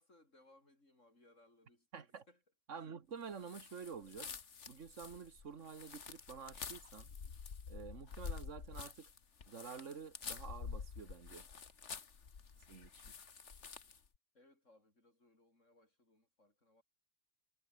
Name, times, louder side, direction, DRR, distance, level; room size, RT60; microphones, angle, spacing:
voice 1, 0.0-2.4 2.7-2.9 3.4-3.5 12.5-12.8 14.3-16.8, left 2 dB, 85° left, 7.1 m, -68 dB
voice 2, 1.9-2.2 2.7-4.4 4.7-7.1 7.7-9.1 9.5-11.5 12.7-13.1, right 6 dB, 80° right, 1.9 m, -49 dB
sound 1, 3.4-14.1, left 6 dB, 70° left, 1.9 m, -49 dB
omnidirectional pair, 1.3 m